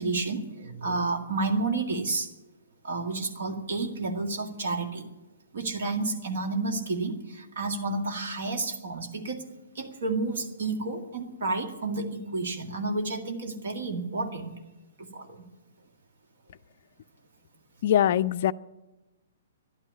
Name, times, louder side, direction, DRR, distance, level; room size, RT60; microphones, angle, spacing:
voice 1, 0.0-2.3 2.8-5.1 5.5-9.4 9.8-14.5 15.0-15.4, right 3 dB, 55° right, 4 dB, 1.9 m, -30 dB
voice 2, 17.8-18.5, left 11 dB, 45° left, 16 dB, 0.4 m, -22 dB
13.0 x 11.0 x 8.3 m, 1.1 s
figure-of-eight pair, 120°, 0 cm